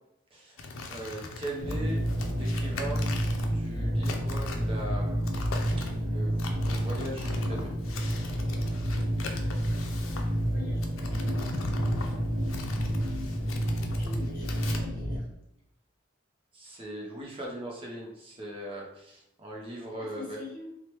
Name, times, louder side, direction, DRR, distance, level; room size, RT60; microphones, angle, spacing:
sound 1, 0.6-14.8, left 2 dB, 80° left, 0.4 m, -40 dB
voice 1, 0.9-3.1 3.4-5.2 6.0-6.4 6.7-7.7 16.5-20.4, right 1 dB, 30° right, -2 dB, 0.5 m, -39 dB
sound 2, 1.6-15.2, equal, 90° right, 0.8 m, -30 dB
voice 2, 10.1-11.5 13.9-15.3 20.0-20.7, left 4 dB, 45° left, -3 dB, 0.9 m, -44 dB
3.2 x 2.1 x 2.9 m, 0.80 s
head